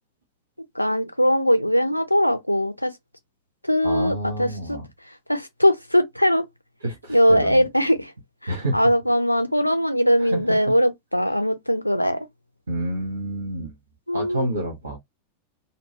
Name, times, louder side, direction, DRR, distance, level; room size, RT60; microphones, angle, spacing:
voice 1, 0.8-2.9 3.7-4.8 5.3-6.4 7.1-8.1 8.7-12.2 14.1-14.5, equal, 90° left, 0.5 m, -20 dB
voice 2, 3.8-4.9 6.8-7.7 8.5-8.9 10.2-10.7 12.7-13.7 14.1-15.0, right 1 dB, 70° right, 0.7 m, -29 dB
2.6 x 2.2 x 2.7 m
figure-of-eight pair, 90°, 0 cm